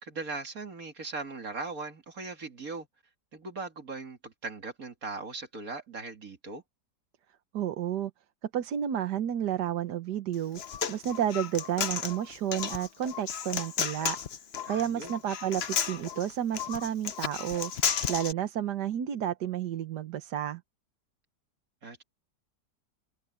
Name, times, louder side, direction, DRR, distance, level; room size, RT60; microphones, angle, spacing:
voice 1, 0.0-2.9 3.3-6.6 14.6-15.1 21.8-22.0, right 3 dB, 55° right, 2.8 m, -39 dB
voice 2, 7.5-8.1 8.4-10.6 10.9-14.2 14.7-17.7 18.1-20.6, right 10 dB, 75° right, 1.6 m, -31 dB
Human voice, 10.3-18.3, left 8 dB, 50° left, 0.9 m, -33 dB
open air
omnidirectional pair, 1.8 m